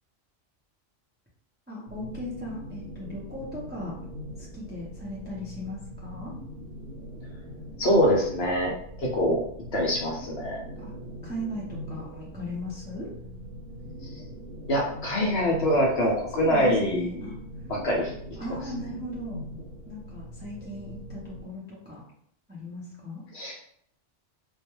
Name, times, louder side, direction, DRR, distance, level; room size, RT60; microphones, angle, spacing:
voice 1, 1.7-4.0 4.4-6.3 10.8-10.9 11.2-13.1 16.0-17.4 18.4-19.4 19.9-22.0 22.5-23.2, left 1 dB, 15° right, -6 dB, 0.4 m, -37 dB
sound 1, 1.9-21.4, equal, 75° right, 1.0 m, -42 dB
voice 2, 7.8-9.4 9.7-10.6 14.1-14.2 14.7-17.3 17.7-18.4 23.3-23.6, equal, 65° left, -1 dB, 0.8 m, -25 dB
2.3 x 2.2 x 3.0 m, 0.67 s
omnidirectional pair, 1.3 m